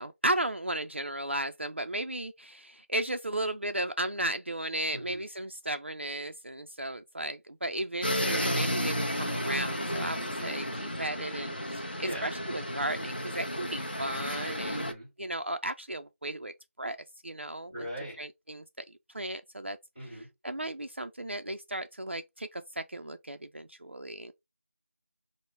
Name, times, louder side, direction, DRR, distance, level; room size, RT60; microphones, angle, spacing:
voice 1, 0.0-14.8 15.2-17.0 17.2-17.9 18.2-18.8 19.1-19.8 20.4-24.3, right 1 dB, 50° right, 0.3 m, -35 dB
voice 2, 4.9-5.2 8.2-8.5 12.0-12.4 14.6-15.1 17.7-18.2 19.9-20.3, right 1 dB, 5° right, 1.0 m, -39 dB
sound 1, 8.0-14.9, equal, 40° left, 0.7 m, -32 dB
4.6 x 2.0 x 3.3 m
figure-of-eight pair, 180°, 8 cm